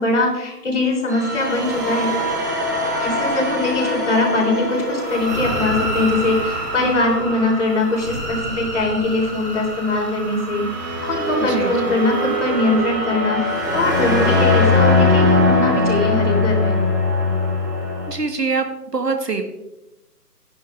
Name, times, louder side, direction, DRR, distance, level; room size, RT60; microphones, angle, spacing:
voice 1, 0.0-2.1 3.0-10.7 11.0-13.4 13.7-16.7, left 2 dB, 45° left, 0 dB, 3.3 m, -21 dB
sound 1, 1.1-18.1, left 2 dB, 10° right, 0.8 m, -22 dB
voice 2, 11.4-11.9 18.1-18.7 18.9-19.4, right 4 dB, 75° right, 5 dB, 1.7 m, -24 dB
14.0 x 10.5 x 2.5 m, 0.90 s
figure-of-eight pair, 145°, 48 cm